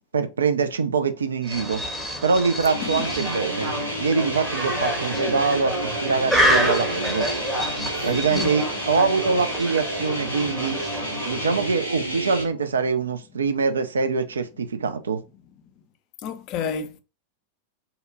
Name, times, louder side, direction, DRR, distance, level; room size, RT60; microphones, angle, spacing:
voice 1, 0.1-1.8 2.2-3.7 4.0-7.3 8.0-10.8 11.3-15.2, right 4 dB, 70° right, 0.3 m, -24 dB
sound 1, 1.4-11.8, equal, 5° right, 0.7 m, -28 dB
sound 2, 2.7-12.4, right 1 dB, 85° right, 1.4 m, -30 dB
voice 2, 16.2-17.0, left 7 dB, 40° left, 0.3 m, -30 dB
2.7 x 2.0 x 2.5 m
figure-of-eight pair, 90°, 0 cm